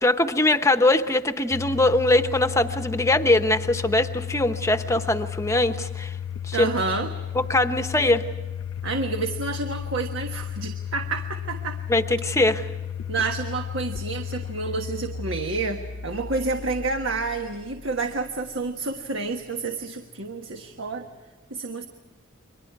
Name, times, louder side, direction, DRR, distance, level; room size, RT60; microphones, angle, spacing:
voice 1, 0.0-6.1 6.5-6.7 7.3-8.2 11.9-12.7, left 2 dB, 15° left, 8 dB, 0.9 m, -21 dB
Domestic sounds home sounds, 1.5-18.4, left 8 dB, 70° left, 0.6 m, -34 dB
voice 2, 6.5-7.1 8.8-11.8 13.1-21.1 21.5-21.9, right 3 dB, 70° right, 5 dB, 1.4 m, -29 dB
30.0 x 24.0 x 4.7 m, 1.2 s
head